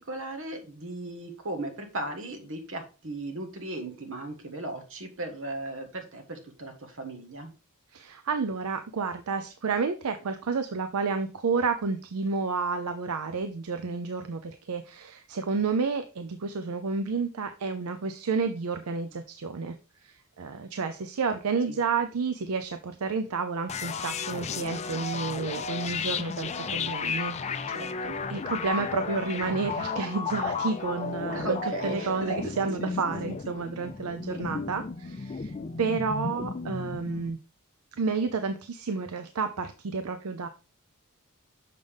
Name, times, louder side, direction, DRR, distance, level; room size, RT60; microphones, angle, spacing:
voice 1, 0.1-7.5 21.6-21.8 27.7-28.1 31.3-32.5 32.8-32.9, right 1 dB, 65° right, 5 dB, 1.4 m, -36 dB
voice 2, 7.9-19.7 20.0-27.7 28.3-31.6 31.8-35.5 35.8-37.4 38.0-40.5, right 4 dB, 80° right, 8 dB, 0.5 m, -30 dB
sound 1, 23.7-37.3, left 5 dB, 30° left, 0.4 m, -33 dB
6.6 x 5.5 x 3.4 m, 0.34 s
head